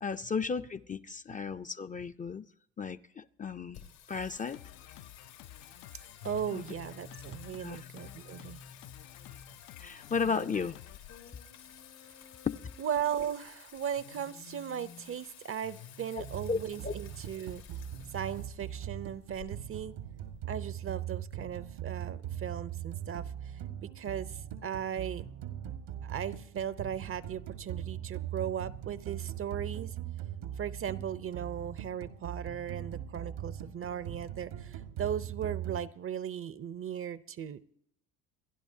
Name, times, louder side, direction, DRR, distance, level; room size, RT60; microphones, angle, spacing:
voice 1, 0.0-2.5 2.8-3.8 4.1-4.6 6.5-6.6 7.6-7.8 9.8-10.7 12.5-12.6 16.1-16.9, left 5 dB, 25° left, 0.6 m, -34 dB
Singing, 3.7-21.3, left 8 dB, 90° left, 2.8 m, -52 dB
Drum kit, 4.1-11.9, left 12 dB, 70° left, 0.6 m, -52 dB
voice 2, 6.2-8.6 10.2-10.6 12.8-17.6 18.1-19.9 20.5-25.3 26.0-29.9 30.6-37.6, right 9 dB, 40° right, 0.7 m, -37 dB
sound 1, 16.2-35.8, right 10 dB, 75° right, 1.6 m, -40 dB
28.0 x 10.5 x 2.8 m
hypercardioid pair, 70°, 34 cm